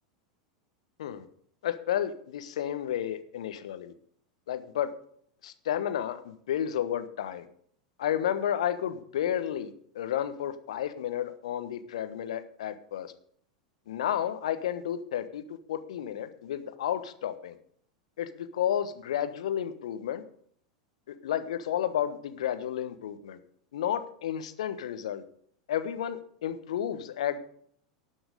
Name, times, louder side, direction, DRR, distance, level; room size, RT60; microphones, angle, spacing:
voice 1, 1.6-3.9 4.5-4.9 5.4-7.5 8.0-13.1 13.9-15.4 15.7-17.6 18.2-20.2 21.1-23.4 23.7-25.2 25.7-27.4, left 10 dB, 65° left, 10 dB, 1.2 m, -32 dB
18.5 x 6.2 x 5.2 m, 0.63 s
figure-of-eight pair, 85°, 4 cm